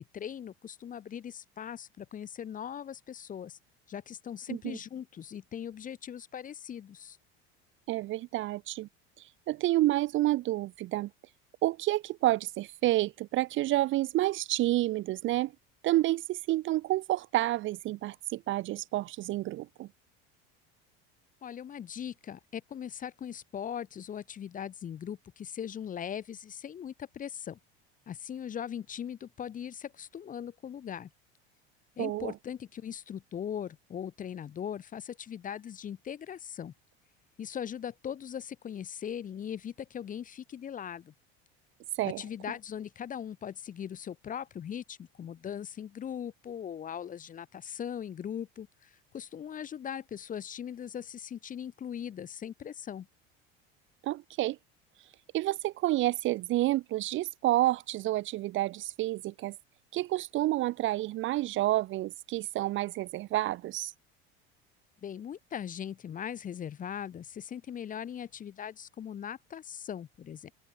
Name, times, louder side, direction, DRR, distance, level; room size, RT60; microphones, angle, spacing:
voice 1, 0.0-3.6 3.9-7.2 21.4-27.6 28.1-31.1 32.0-36.7 37.4-41.1 42.0-53.1 65.0-70.5, left 9 dB, 30° left, 0.7 m, -40 dB
voice 2, 7.9-8.9 9.2-11.1 11.6-15.5 15.8-19.9 32.0-32.3 41.9-42.2 54.0-54.6 55.3-59.6 59.9-63.9, right 16 dB, 40° right, 0.5 m, -29 dB
supercardioid pair, 100°, 30 cm